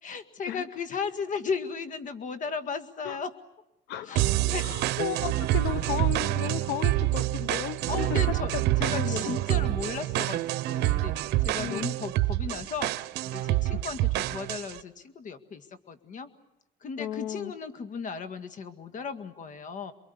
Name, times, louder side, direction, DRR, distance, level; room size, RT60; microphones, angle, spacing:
voice 1, 0.0-3.3 4.1-4.7 7.9-16.3 16.8-19.9, left 5 dB, 50° left, 10 dB, 2.0 m, -36 dB
voice 2, 3.9-8.1 8.5-9.2 11.6-11.9 17.0-17.5, left 13 dB, 85° left, 14 dB, 0.9 m, -34 dB
sound 1, 4.2-14.8, right 16 dB, 85° right, 0.9 m, -27 dB
28.5 x 22.5 x 8.3 m, 0.89 s
cardioid pair, 110°, 17 cm